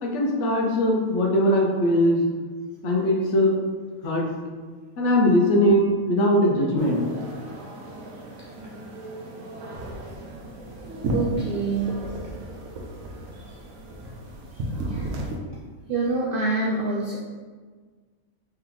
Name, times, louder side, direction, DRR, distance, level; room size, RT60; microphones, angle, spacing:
voice 1, 0.0-2.3 2.8-3.5 4.0-4.3 5.0-7.0, left 1 dB, 60° left, -1 dB, 1.0 m, -20 dB
sound 1, 6.8-15.4, right 1 dB, 70° right, 1.1 m, -34 dB
voice 2, 11.1-11.9 14.9-15.1 15.9-17.2, right 3 dB, 90° right, -3 dB, 0.4 m, -26 dB
3.4 x 3.1 x 3.7 m, 1.5 s
omnidirectional pair, 1.5 m